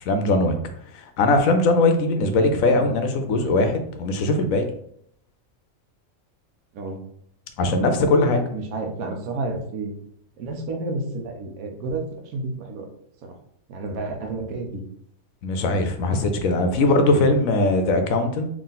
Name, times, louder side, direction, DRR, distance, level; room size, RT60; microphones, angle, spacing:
voice 1, 0.1-0.6 0.9-4.6 7.6-8.4 15.4-18.5, left 2 dB, 75° left, 6 dB, 1.0 m, -20 dB
voice 2, 8.3-9.9 10.4-12.9 13.2-13.4 13.7-14.8 16.9-17.3 17.6-17.8, right 3 dB, 80° right, 3 dB, 1.2 m, -31 dB
3.6 x 2.5 x 3.9 m, 0.69 s
omnidirectional pair, 1.5 m